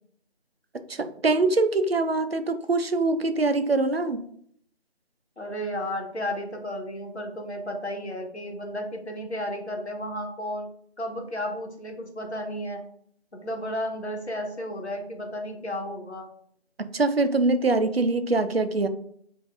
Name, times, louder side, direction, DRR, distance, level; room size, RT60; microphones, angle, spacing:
voice 1, 0.9-4.2 16.8-18.9, right 3 dB, 65° right, 9 dB, 0.5 m, -23 dB
voice 2, 5.4-10.7 11.0-12.8 13.4-16.3, equal, 75° left, 2 dB, 1.1 m, -33 dB
5.1 x 2.6 x 2.5 m, 0.64 s
figure-of-eight pair, 170°, 33 cm